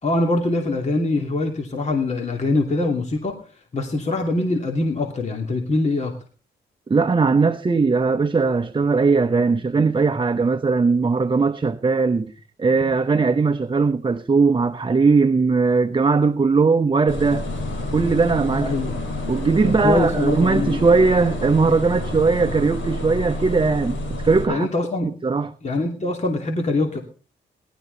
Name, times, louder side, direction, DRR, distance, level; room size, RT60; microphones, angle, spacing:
voice 1, 0.0-3.4 3.7-6.1 12.7-12.8 18.6-19.0 19.6-20.8 24.5-25.1 25.6-27.0, left 2 dB, 35° left, 2.8 m, -23 dB
voice 2, 6.9-12.3 12.6-17.4 17.9-18.7 19.3-24.7 25.0-25.5, right 4 dB, 25° right, 0.9 m, -19 dB
sound 1, 17.1-24.5, left 1 dB, 70° left, 7.4 m, -29 dB
18.5 x 12.5 x 4.0 m
cardioid pair, 85°, 20 cm